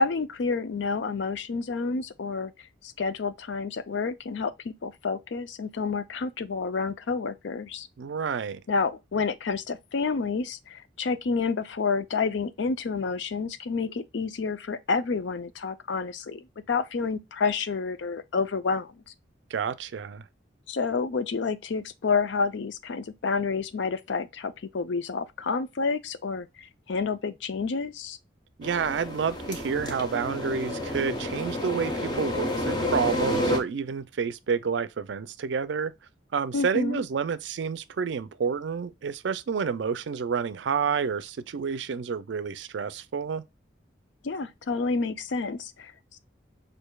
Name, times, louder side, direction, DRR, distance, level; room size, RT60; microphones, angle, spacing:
voice 1, 0.0-2.5 2.8-7.9 8.7-19.0 20.7-28.2 36.5-37.0 44.2-46.2, left 4 dB, 75° left, 0.5 m, -29 dB
voice 2, 8.0-8.6 19.5-20.2 28.6-35.9 36.3-43.4, right 6 dB, 70° right, 0.4 m, -29 dB
sound 1, 28.6-33.6, left 1 dB, 20° left, 0.7 m, -30 dB
6.4 x 2.6 x 2.2 m
head